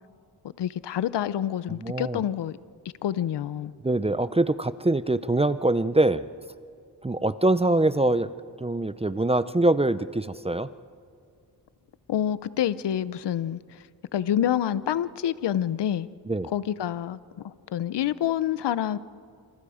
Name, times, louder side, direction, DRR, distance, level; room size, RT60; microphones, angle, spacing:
voice 1, 0.6-2.6 3.0-3.7 12.1-13.8 14.1-16.1 16.4-19.0, left 10 dB, 85° left, 16 dB, 0.7 m, -27 dB
voice 2, 1.8-2.2 3.8-6.3 7.0-8.3 8.6-10.7 16.3-16.5, right 2 dB, 15° right, 14 dB, 0.6 m, -24 dB
27.5 x 27.0 x 5.0 m, 2.3 s
cardioid pair, 80°, 40 cm